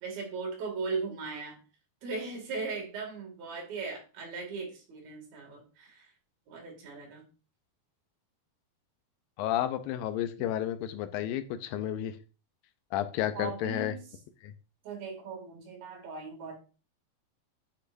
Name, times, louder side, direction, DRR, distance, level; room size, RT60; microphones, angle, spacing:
voice 1, 0.0-1.6 2.0-6.1 6.5-7.2 13.3-14.0 14.8-16.5, right 4 dB, 80° right, 1 dB, 4.1 m, -38 dB
voice 2, 9.4-12.1 12.9-13.9 14.4-14.5, left 11 dB, 80° left, 10 dB, 2.3 m, -31 dB
10.5 x 6.1 x 2.6 m, 0.34 s
omnidirectional pair, 4.1 m